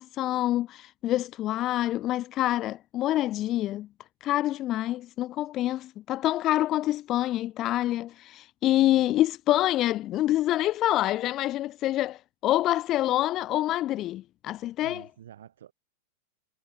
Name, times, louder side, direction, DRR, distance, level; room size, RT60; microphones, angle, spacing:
voice 1, 0.0-3.9 4.2-15.1, left 14 dB, 35° left, 0.5 m, -26 dB
voice 2, 14.8-15.7, right 10 dB, 85° right, 7.6 m, -49 dB
hypercardioid pair, 125°, 0 cm